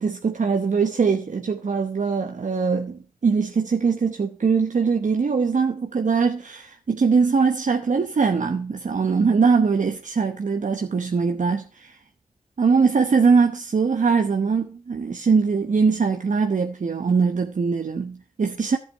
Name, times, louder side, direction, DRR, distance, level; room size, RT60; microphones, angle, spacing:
voice 1, 0.0-12.0 12.6-18.8, right 5 dB, 60° right, 0.9 m, -22 dB
11.0 x 8.0 x 4.5 m
cardioid pair, 60°, 15 cm